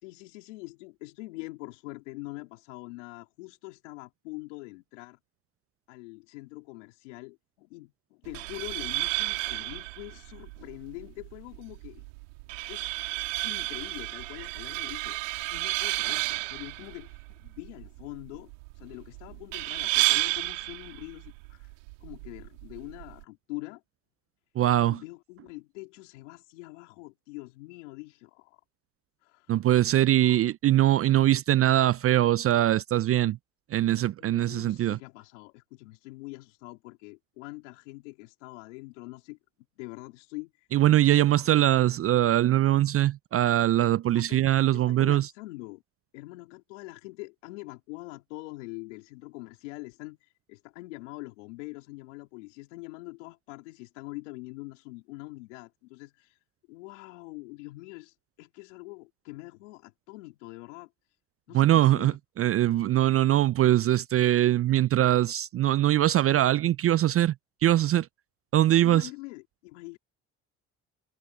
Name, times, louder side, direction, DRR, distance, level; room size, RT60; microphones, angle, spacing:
voice 1, 0.0-5.2 5.9-12.0 12.7-12.9 13.4-15.2 15.5-18.5 18.7-21.7 22.0-23.8 24.8-28.6 29.2-29.6 30.1-30.4 34.2-39.4 39.8-40.7 41.4-41.5 44.1-45.8 46.1-56.4 56.7-60.9 61.5-62.2 68.8-70.0, left 23 dB, 85° left, 3.4 m, -44 dB
sound 1, 8.2-23.2, right 26 dB, 85° right, 2.7 m, -32 dB
voice 2, 24.6-25.0 29.5-33.4 33.7-35.0 40.7-45.3 61.5-62.1 62.4-67.3 67.6-68.1 68.5-69.1, right 13 dB, 40° right, 0.4 m, -22 dB
hypercardioid pair, 60°, 35 cm